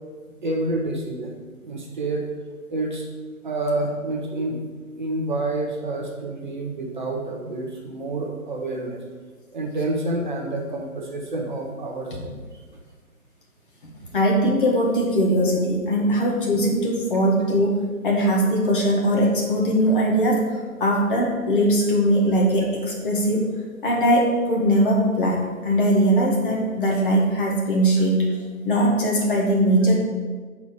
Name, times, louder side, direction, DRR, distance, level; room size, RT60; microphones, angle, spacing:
voice 1, 0.4-1.3 1.6-2.3 2.7-3.0 3.4-4.6 5.0-9.0 9.5-12.3, right 2 dB, 35° right, -1 dB, 0.8 m, -28 dB
voice 2, 14.1-20.4 20.8-23.4 23.8-28.2 28.6-30.0, equal, 35° left, -2 dB, 1.5 m, -20 dB
7.0 x 4.1 x 4.6 m, 1.5 s
figure-of-eight pair, 150°, 43 cm